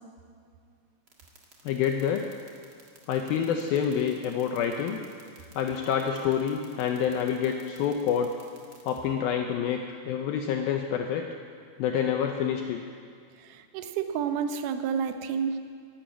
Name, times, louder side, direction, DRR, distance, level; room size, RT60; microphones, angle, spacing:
sound 1, 1.1-9.0, right 6 dB, 50° right, 1.2 m, -54 dB
voice 1, 1.7-2.3 3.1-5.0 5.6-8.3 8.9-9.8 10.1-11.3 11.8-12.8, left 8 dB, 80° left, 3 dB, 2.2 m, -27 dB
voice 2, 13.4-15.6, right 7 dB, 75° right, 8 dB, 2.4 m, -30 dB
12.0 x 12.0 x 8.8 m, 2.3 s
omnidirectional pair, 5.1 m